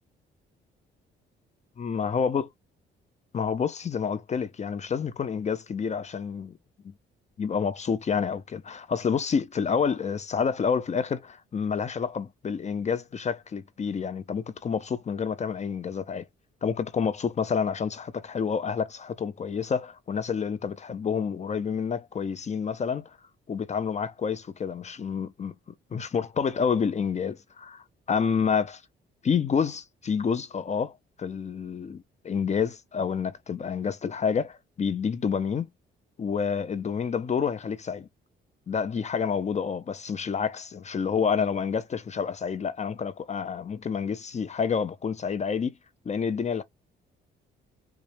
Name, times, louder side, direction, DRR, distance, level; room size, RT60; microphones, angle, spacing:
voice 1, 1.8-2.5 3.3-6.6 6.8-6.9 7.4-16.2 16.6-23.2 23.5-25.5 25.9-28.8 29.2-35.7 36.2-38.1 38.7-45.7 46.1-46.6, left 6 dB, 35° left, 0.6 m, -28 dB
3.9 x 2.4 x 3.2 m
cardioid pair, 90°, 20 cm